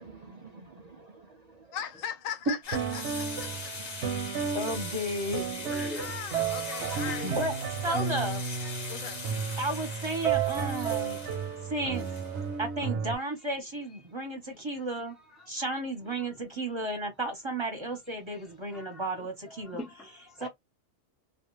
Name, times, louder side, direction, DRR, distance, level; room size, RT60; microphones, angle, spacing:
voice 1, 0.0-1.8 3.8-4.6 6.7-7.0 11.5-12.1 12.8-12.9 14.4-14.5, right 2 dB, 85° right, 0.3 m, -50 dB
voice 2, 1.7-3.5 5.9-7.3 7.9-8.1 8.9-9.2, left 9 dB, 80° left, 1.0 m, -38 dB
sound 1, 2.6-12.6, left 4 dB, 40° left, 0.7 m, -41 dB
sound 2, 2.7-13.1, right 7 dB, 65° right, 0.8 m, -33 dB
voice 3, 4.5-5.5 7.2-7.5 7.8-8.4 9.6-11.2 11.7-12.0 12.6-15.2 15.5-19.8 20.4-20.5, right 1 dB, 25° right, 0.7 m, -33 dB
voice 4, 5.1-6.2 7.2-7.4 8.6-8.7 9.9-10.4 11.8-12.1 12.5-12.6 14.1-14.2 14.7-14.8 15.1-15.7 16.2-16.4 18.3-19.1 19.5-20.5, left 2 dB, ahead, 0.4 m, -46 dB
2.3 x 2.3 x 3.0 m
omnidirectional pair, 1.4 m